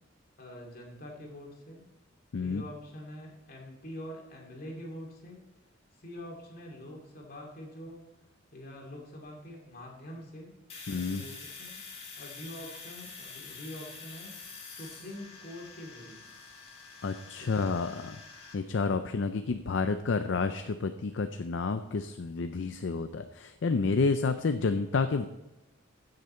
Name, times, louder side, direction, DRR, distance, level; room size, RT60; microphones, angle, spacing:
voice 1, 0.4-1.9 2.3-5.5 5.9-8.0 8.5-10.5 10.9-14.4 14.7-16.3 17.4-18.3, left 1 dB, 50° left, 0 dB, 2.6 m, -45 dB
Domestic sounds home sounds, 10.7-18.5, left 4 dB, 30° left, 2.3 m, -47 dB
voice 2, 10.9-11.2 17.0-18.1 18.5-25.3, left 4 dB, 65° left, 9 dB, 0.5 m, -30 dB
15.5 x 6.7 x 4.3 m, 1.0 s
head